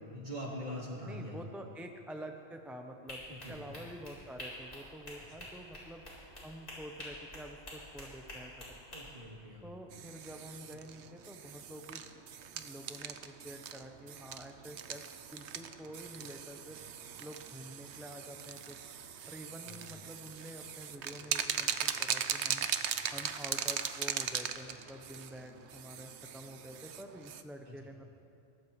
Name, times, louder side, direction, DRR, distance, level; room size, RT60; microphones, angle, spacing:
voice 1, 0.1-1.4 3.3-3.6 5.4-5.5 8.9-9.7 19.6-19.9 27.7-27.8, equal, 45° right, -4 dB, 3.0 m, -43 dB
voice 2, 1.0-6.0 6.4-8.8 9.6-12.0 12.4-15.0 15.3-16.8 17.2-18.8 19.3-22.7 23.1-28.1, equal, ahead, 4 dB, 0.5 m, -48 dB
sound 1, 3.1-9.0, left 1 dB, 65° left, 4.4 m, -47 dB
sound 2, 9.9-27.4, right 8 dB, 90° right, 1.0 m, -39 dB
22.0 x 17.5 x 3.1 m, 2.8 s
omnidirectional pair, 1.1 m